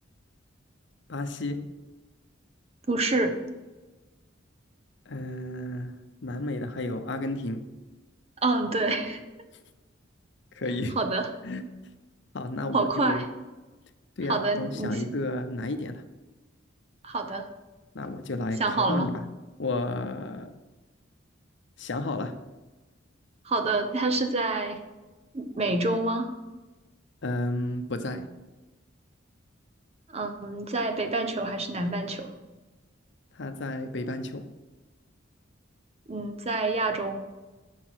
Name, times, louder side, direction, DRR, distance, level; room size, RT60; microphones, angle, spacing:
voice 1, 1.1-1.6 5.1-7.6 10.5-11.0 11.4-11.6 12.3-13.2 14.2-16.0 17.9-19.2 19.6-20.5 21.8-22.3 27.2-28.3 33.3-34.5, left 2 dB, 65° left, 8 dB, 0.7 m, -32 dB
voice 2, 2.9-3.4 8.4-9.2 11.0-11.3 12.7-13.2 14.3-15.0 17.0-17.4 18.6-19.1 23.4-24.8 25.3-26.3 30.1-32.3 36.1-37.2, right 2 dB, 30° right, 7 dB, 0.8 m, -27 dB
7.2 x 6.1 x 6.2 m, 1.2 s
head